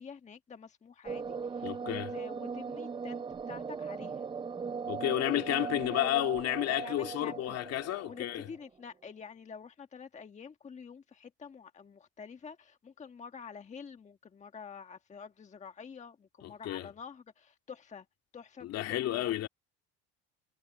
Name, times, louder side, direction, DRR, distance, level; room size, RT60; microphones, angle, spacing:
voice 1, 0.0-4.3 6.7-7.6 8.0-18.1 18.3-19.5, left 6 dB, 25° left, 1.3 m, -48 dB
sound 1, 1.0-8.6, right 5 dB, 15° right, 0.5 m, -39 dB
voice 2, 1.6-2.1 4.8-8.5 16.4-16.9 18.6-19.5, left 14 dB, 55° left, 2.5 m, -31 dB
cardioid pair, 115°, 30 cm